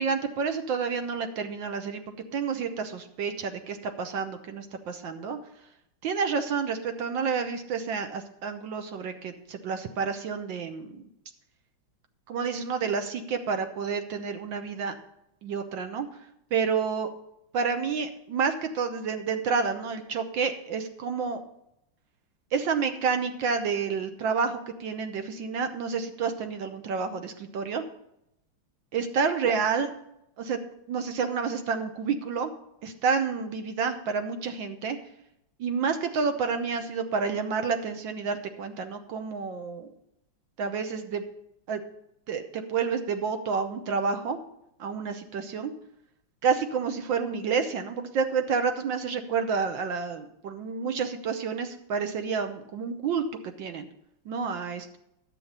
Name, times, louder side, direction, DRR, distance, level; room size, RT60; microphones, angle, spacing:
voice 1, 0.0-2.0 2.3-5.4 6.0-11.0 12.3-14.9 15.4-16.1 16.5-17.1 17.5-21.4 22.5-27.8 28.9-29.9 30.4-30.6 30.9-32.5 32.8-35.0 35.6-39.9 40.6-41.2 41.7-41.8 42.3-44.4 44.8-45.7 46.4-53.2 53.6-53.9 54.3-54.9, right 5 dB, 65° right, 7 dB, 1.5 m, -29 dB
10.0 x 7.6 x 5.5 m, 0.80 s
omnidirectional pair, 2.4 m